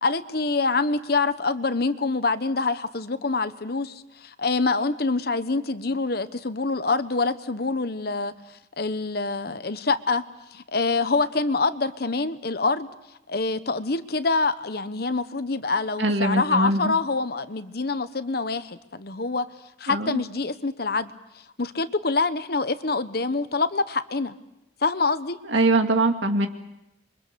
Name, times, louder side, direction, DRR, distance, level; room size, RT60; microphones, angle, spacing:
voice 1, 0.0-10.2 10.5-12.9 13.3-19.5 19.8-21.1 21.6-24.3 24.8-25.4, left 3 dB, 55° left, 12 dB, 1.1 m, -26 dB
voice 2, 16.0-16.9 19.9-20.1 25.5-26.5, right 2 dB, 80° right, 5 dB, 2.3 m, -22 dB
27.5 x 23.5 x 6.9 m, 0.87 s
head